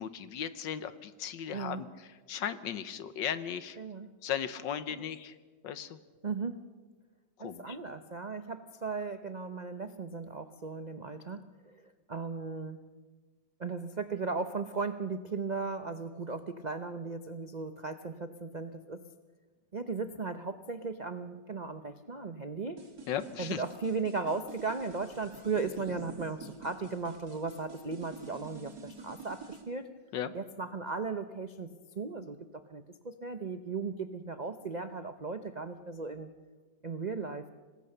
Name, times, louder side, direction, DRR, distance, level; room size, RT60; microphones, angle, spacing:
voice 1, 0.0-1.9 2.3-3.8 4.2-5.3 5.6-6.0 7.4-7.8 23.1-23.6 30.1-30.3, left 9 dB, 70° left, 13 dB, 1.6 m, -36 dB
voice 2, 1.5-1.8 3.8-4.1 4.9-5.0 6.2-6.6 7.4-11.8 12.1-12.8 13.6-19.0 19.7-22.8 23.4-29.9 30.3-31.7 32.0-32.4 32.7-36.3 36.8-37.5, right 4 dB, 70° right, 9 dB, 0.4 m, -36 dB
sound 1, 22.8-29.6, right 4 dB, 50° right, 3.1 m, -48 dB
26.0 x 19.5 x 6.7 m, 1.3 s
omnidirectional pair, 2.1 m